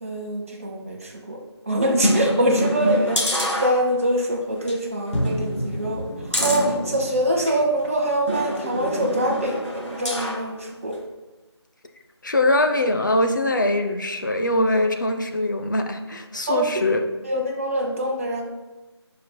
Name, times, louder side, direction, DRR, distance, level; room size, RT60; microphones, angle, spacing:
voice 1, 0.0-11.0 16.5-16.8 17.2-18.4, right 1 dB, 30° right, 1 dB, 1.0 m, -24 dB
sound 1, 2.0-4.2 4.6-4.7 5.1-7.6 8.3-10.5 10.9-11.0, equal, 90° left, 2.2 m, -26 dB
voice 2, 12.2-17.0, left 1 dB, 40° left, 4 dB, 0.7 m, -22 dB
15.0 x 5.2 x 2.2 m, 1.1 s
figure-of-eight pair, 165°, 15 cm